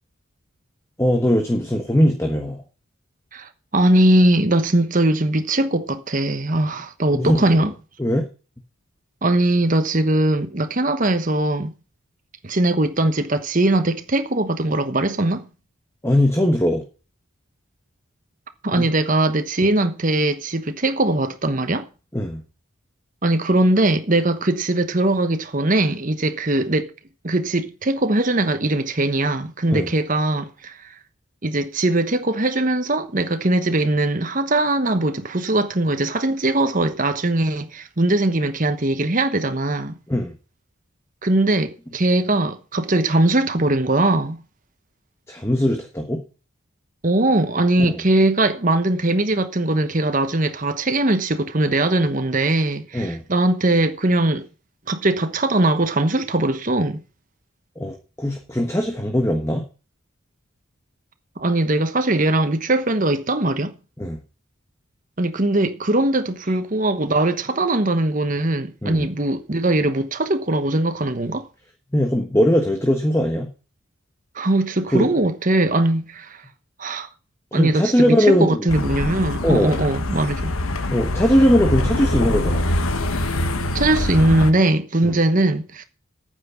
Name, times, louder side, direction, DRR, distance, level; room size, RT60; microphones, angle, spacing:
voice 1, 1.0-2.6 7.1-7.7 8.0-8.3 16.0-16.8 18.7-18.9 19.6-19.7 22.1-22.4 29.7-29.9 40.1-40.3 45.3-46.2 47.8-48.0 52.9-53.2 57.8-59.6 64.0-64.2 68.8-69.1 71.9-73.5 74.9-75.1 77.5-78.7 79.4-79.8 80.9-82.6 85.0-85.2, equal, 15° left, 1.3 m, -20 dB
voice 2, 3.3-7.7 9.2-11.7 12.4-15.5 18.6-21.9 23.2-26.9 27.2-30.9 31.4-40.0 41.2-44.4 47.0-54.5 54.9-57.0 61.4-63.7 65.2-71.5 74.3-76.4 76.8-77.1 77.5-80.5 83.7-85.8, right 2 dB, 40° right, 1.1 m, -20 dB
sound 1, 78.7-84.5, left 1 dB, 85° left, 1.3 m, -24 dB
9.3 x 8.4 x 7.0 m
head